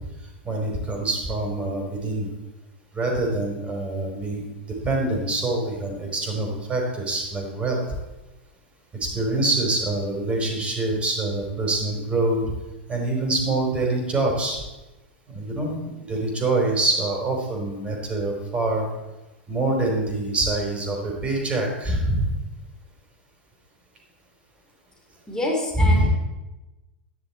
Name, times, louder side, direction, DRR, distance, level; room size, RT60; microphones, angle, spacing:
voice 1, 0.4-2.3 2.9-7.8 9.0-12.5 12.9-14.6 15.3-18.8 19.5-22.3 25.8-26.1, right 2 dB, 20° right, 0 dB, 4.6 m, -25 dB
voice 2, 25.3-26.1, left 2 dB, 10° left, -2 dB, 4.2 m, -26 dB
12.5 x 10.5 x 4.6 m, 1.1 s
figure-of-eight pair, 95°, 6 cm